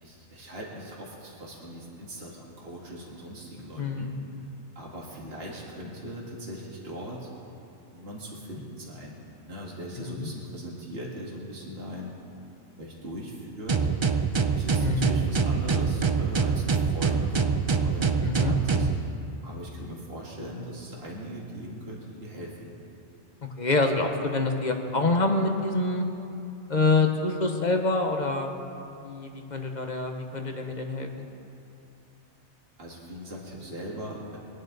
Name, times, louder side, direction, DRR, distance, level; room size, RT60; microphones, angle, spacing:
voice 1, 0.0-4.1 4.8-7.3 7.9-9.2 9.4-12.1 12.8-13.9 14.5-17.4 17.8-18.9 19.4-22.7 32.8-34.4, equal, 55° right, -4 dB, 2.3 m, -39 dB
voice 2, 3.8-4.2 10.0-10.3 14.8-15.1 18.2-18.5 23.6-26.1 26.7-28.5 29.0-31.3, left 3 dB, 40° left, 4 dB, 1.1 m, -26 dB
sound 1, 13.7-19.0, right 5 dB, 35° right, 0.4 m, -24 dB
23.0 x 10.5 x 4.0 m, 2.7 s
omnidirectional pair, 1.2 m